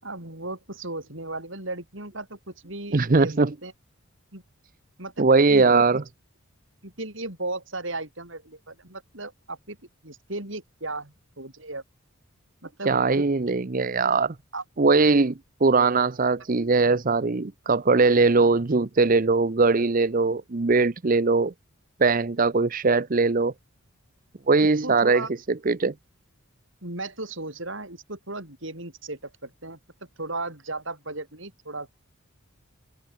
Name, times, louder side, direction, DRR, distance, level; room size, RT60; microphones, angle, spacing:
voice 1, 0.0-3.4 3.6-3.7 4.3-4.4 5.0-5.8 6.8-9.8 10.0-11.8 12.6-13.3 14.5-14.6 24.8-25.3 26.8-29.8 30.2-31.9, right 2 dB, 60° right, 7.7 m, -36 dB
voice 2, 2.9-3.5 5.2-6.0 12.8-14.3 14.8-21.5 22.0-23.5 24.5-25.9, right 3 dB, 40° right, 0.6 m, -21 dB
head